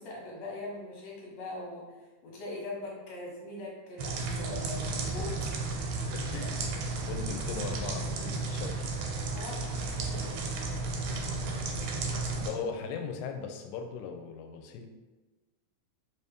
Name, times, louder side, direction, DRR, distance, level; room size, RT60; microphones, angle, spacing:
voice 1, 0.0-2.0 2.2-5.3 6.3-6.5 9.4-10.4 10.8-11.3, left 2 dB, 65° left, -3 dB, 2.0 m, -41 dB
sound 1, 4.0-12.5, right 3 dB, 90° right, 2.1 m, -33 dB
voice 2, 7.1-9.0 10.8-10.9 12.4-14.9, left 5 dB, 85° left, 5 dB, 2.0 m, -38 dB
4.6 x 2.8 x 3.4 m, 1.2 s
omnidirectional pair, 3.5 m